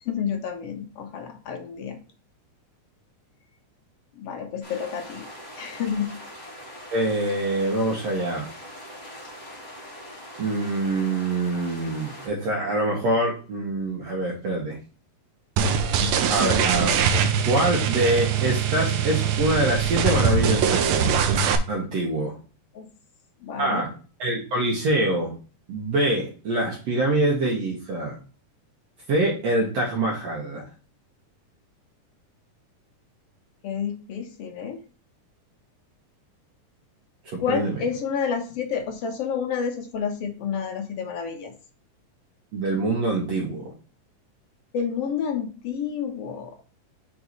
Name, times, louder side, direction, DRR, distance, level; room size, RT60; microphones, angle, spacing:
voice 1, 0.0-2.0 4.2-5.3 5.6-6.2 22.7-22.9 23.4-23.8 33.6-34.8 37.4-41.5 44.7-46.5, left 7 dB, 65° left, 4 dB, 1.5 m, -29 dB
sound 1, 4.6-12.3, equal, 15° left, 2.1 m, -42 dB
voice 2, 6.9-8.5 10.4-14.8 16.3-17.2 17.5-21.3 21.7-22.4 23.6-23.9 24.2-25.4 25.7-28.1 29.1-30.6 37.3-37.7 42.5-43.7, right 1 dB, 60° right, -2 dB, 2.3 m, -25 dB
sound 2, 15.6-21.6, right 7 dB, 75° right, 1.7 m, -22 dB
5.5 x 4.7 x 4.4 m, 0.38 s
omnidirectional pair, 3.7 m